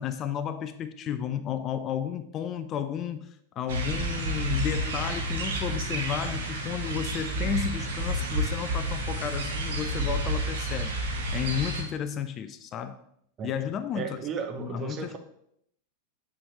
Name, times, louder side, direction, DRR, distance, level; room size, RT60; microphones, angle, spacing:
voice 1, 0.0-3.3 3.6-11.0 11.3-13.0 13.4-14.2 14.6-15.2, left 9 dB, 30° left, 11 dB, 0.4 m, -32 dB
sound 1, 3.7-11.8, right 1 dB, 60° right, 1.4 m, -30 dB
voice 2, 13.9-15.2, right 6 dB, 30° right, 6 dB, 0.8 m, -34 dB
8.4 x 4.8 x 3.2 m, 0.73 s
figure-of-eight pair, 90°, 0 cm